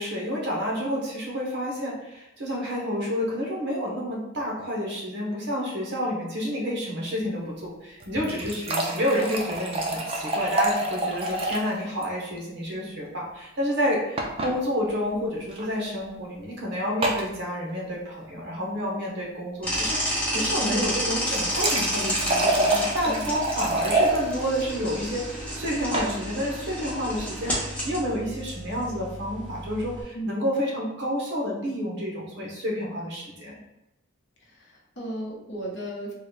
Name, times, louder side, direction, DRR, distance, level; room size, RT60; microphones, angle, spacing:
voice 1, 0.0-33.6, equal, 50° right, -2 dB, 1.0 m, -29 dB
sound 1, 8.0-11.7 12.0-12.1 12.4-12.5 14.2-14.5 15.5-15.7 17.0-17.3 21.1-24.2 25.6-26.1, right 2 dB, 25° right, 0.4 m, -27 dB
sound 2, 19.6-30.0, equal, 5° left, 0.8 m, -31 dB
voice 2, 34.4-36.1, right 1 dB, 55° left, -3 dB, 0.9 m, -35 dB
3.8 x 2.3 x 3.2 m, 0.92 s
head